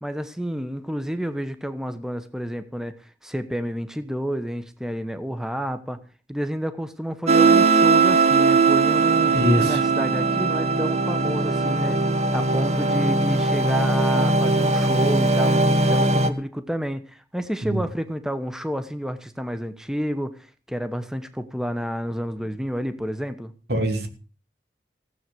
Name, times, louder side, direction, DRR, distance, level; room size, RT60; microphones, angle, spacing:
voice 1, 0.0-6.0 6.3-9.3 9.6-12.0 12.3-23.5, equal, 5° right, 10 dB, 1.0 m, -30 dB
sound 1, 7.3-16.3, right 3 dB, 35° right, 1.4 m, -19 dB
voice 2, 9.3-9.8 17.6-17.8 23.7-24.1, equal, 65° right, 6 dB, 2.9 m, -22 dB
16.0 x 8.1 x 7.8 m, 0.38 s
head